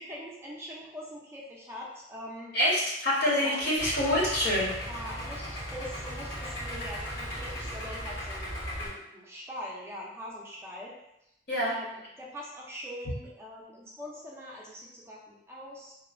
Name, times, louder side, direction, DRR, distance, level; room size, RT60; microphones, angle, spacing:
voice 1, 0.1-2.5 3.3-3.6 4.8-10.9 11.6-15.9, equal, 15° right, -4 dB, 0.4 m, -42 dB
voice 2, 2.5-4.7 11.5-11.7, left 1 dB, 60° left, -5 dB, 0.9 m, -26 dB
Idling, 3.8-8.9, equal, 85° left, 1.4 m, -37 dB
2.9 x 2.0 x 2.4 m, 0.85 s
head